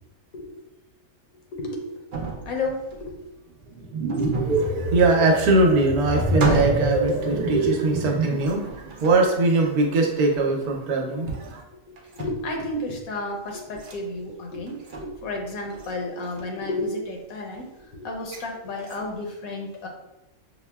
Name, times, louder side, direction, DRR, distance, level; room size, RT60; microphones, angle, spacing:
voice 1, 1.5-2.0 2.4-3.2 9.9-10.0 11.2-11.3 11.9-14.8 15.0-19.9, left 2 dB, 75° left, 1 dB, 1.1 m, -32 dB
sound 1, 2.1-3.3 4.1-4.8 5.6-5.7 6.1-7.6 8.4-9.3 10.3-10.5 11.2-11.6 12.0-12.6 13.7-14.0 14.7-15.3 15.7-15.9 16.2-16.6 18.2-18.5 18.8-19.2, right 3 dB, 70° right, 0.4 m, -34 dB
sound 2, 3.7-8.5, right 2 dB, 50° right, 0.8 m, -25 dB
voice 2, 4.3-11.6, right 2 dB, 85° right, 1 dB, 1.2 m, -22 dB
5.7 x 2.1 x 2.2 m, 0.94 s
omnidirectional pair, 1.5 m